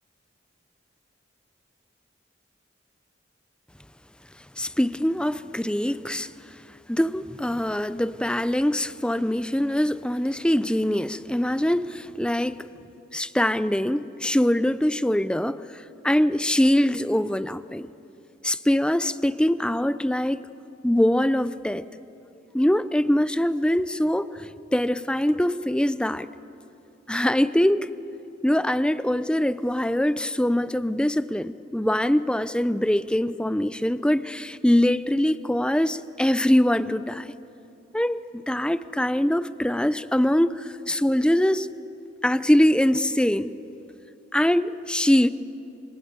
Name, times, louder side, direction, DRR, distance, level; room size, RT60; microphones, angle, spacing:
voice 1, 4.6-6.3 6.9-12.7 13.1-15.6 16.0-17.9 18.4-20.5 20.8-21.8 22.5-26.3 27.1-27.9 28.4-37.3 37.9-41.7 42.2-43.5 44.3-45.3, left 1 dB, 5° left, 14 dB, 0.5 m, -23 dB
27.5 x 24.0 x 8.2 m, 2.8 s
head